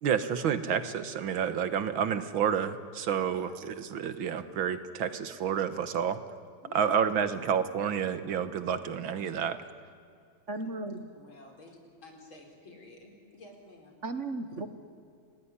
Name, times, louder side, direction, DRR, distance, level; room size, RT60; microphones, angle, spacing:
voice 1, 0.0-6.2 6.7-9.6, right 8 dB, 80° right, 11 dB, 2.1 m, -29 dB
voice 2, 3.2-3.7 6.6-6.9 10.5-10.8 11.1-14.0, left 2 dB, 85° left, 2 dB, 5.1 m, -52 dB
voice 3, 10.5-11.0 14.0-14.7, right 2 dB, 40° right, 9 dB, 1.5 m, -35 dB
29.0 x 19.5 x 10.0 m, 2.2 s
omnidirectional pair, 2.2 m